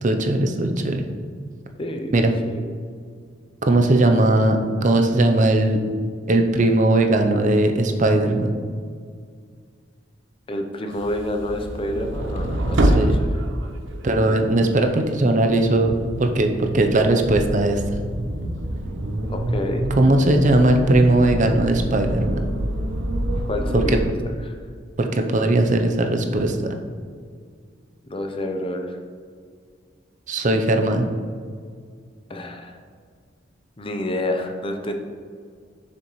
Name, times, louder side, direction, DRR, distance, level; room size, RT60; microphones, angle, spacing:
voice 1, 0.0-1.0 2.1-2.3 3.6-5.8 6.3-8.5 12.8-13.2 14.0-17.8 20.0-22.4 25.0-26.6 30.3-31.1, right 2 dB, 45° right, 5 dB, 0.6 m, -19 dB
voice 2, 1.8-2.8 10.5-13.3 19.3-19.9 23.5-24.1 24.5-24.6 28.1-29.0 32.3-32.7 33.8-34.9, left 1 dB, 30° left, 4 dB, 0.6 m, -28 dB
sound 1, 10.9-14.5 14.8-24.0, right 1 dB, 85° right, 0.7 m, -26 dB
6.8 x 6.7 x 3.1 m, 2.1 s
head